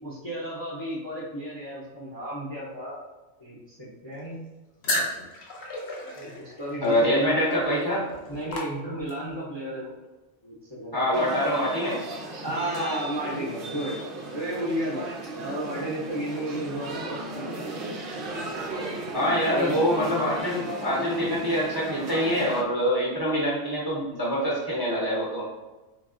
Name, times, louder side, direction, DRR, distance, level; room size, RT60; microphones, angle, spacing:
voice 1, 0.0-3.0 3.4-4.4 6.1-7.8 8.3-9.9 10.4-11.0 12.4-14.0 14.3-17.7 19.2-19.7, right 1 dB, 25° left, -6 dB, 0.7 m, -33 dB
sound 1, 4.8-9.3, left 1 dB, 60° left, 0.9 m, -34 dB
voice 2, 6.8-8.0 10.9-12.1 19.1-25.5, equal, 20° right, -6 dB, 0.7 m, -25 dB
sound 2, 11.1-22.6, right 2 dB, 60° right, 0.6 m, -36 dB
3.9 x 3.4 x 2.5 m, 1.1 s
omnidirectional pair, 1.4 m